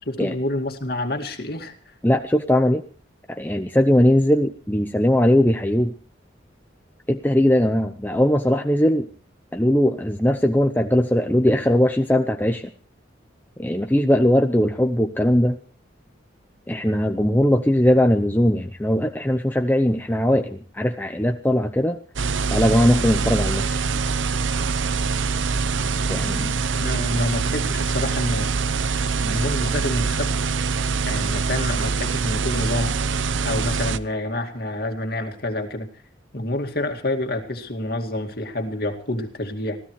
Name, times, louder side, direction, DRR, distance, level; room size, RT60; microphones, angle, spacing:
voice 1, 0.0-1.9 26.8-28.5 29.2-30.3 31.0-33.0 33.4-35.9 36.3-39.8, left 1 dB, 50° left, 5 dB, 2.3 m, -28 dB
voice 2, 2.0-2.8 3.3-5.9 7.1-9.1 9.5-12.7 13.6-15.6 16.7-22.0 22.5-23.8 26.1-26.5, equal, 10° left, 5 dB, 0.7 m, -20 dB
sound 1, 22.2-34.0, right 4 dB, 75° right, 0.7 m, -24 dB
26.0 x 16.0 x 3.2 m, 0.39 s
head